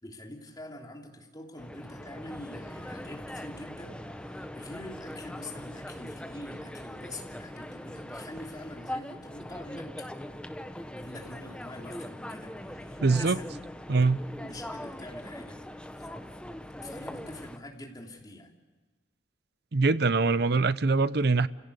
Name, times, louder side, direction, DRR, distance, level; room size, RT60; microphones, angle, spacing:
voice 1, 0.0-10.1 10.9-13.5 14.4-15.6 16.0-16.1 16.8-18.5, left 1 dB, 20° left, 3.1 m, -45 dB
sound 1, 1.6-17.6, left 1 dB, 5° left, 0.9 m, -41 dB
voice 2, 13.0-13.4 13.9-14.2 19.7-21.5, right 3 dB, 60° right, 0.7 m, -23 dB
29.0 x 17.0 x 8.2 m
head